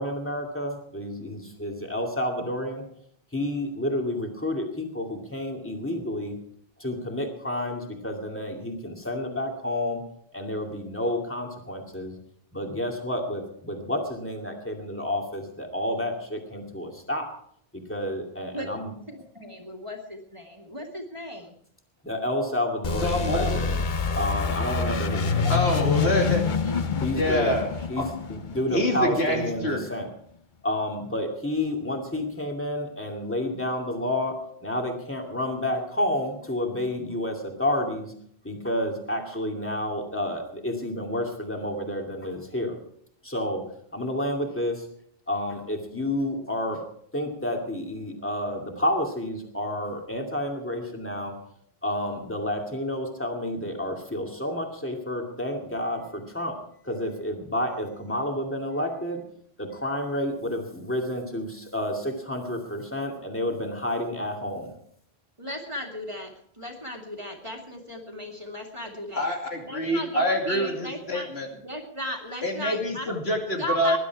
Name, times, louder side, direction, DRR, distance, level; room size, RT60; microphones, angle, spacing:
voice 1, 0.0-2.8 3.3-6.3 6.8-10.0 10.3-12.1 12.5-17.3 17.7-18.9 22.0-23.8 24.2-26.0 27.0-27.6 27.9-30.1 30.6-38.1 38.4-42.8 43.2-43.6 43.9-44.9 45.3-46.8 47.1-51.4 51.8-56.6 56.8-59.2 59.6-64.7, left 1 dB, 10° left, 2 dB, 2.5 m, -30 dB
voice 2, 19.1-21.5 26.6-26.7 65.4-69.3 69.6-73.2 73.6-74.0, equal, 30° right, 1 dB, 2.2 m, -36 dB
sound 1, 22.8-29.4, left 5 dB, 50° left, 0.9 m, -27 dB
voice 3, 23.0-23.6 25.4-26.4 27.2-27.7 28.0-28.1 28.7-29.8 69.1-71.5 72.4-74.0, left 1 dB, 80° left, 1 dB, 2.8 m, -26 dB
20.0 x 11.5 x 4.7 m, 0.66 s
omnidirectional pair, 1.1 m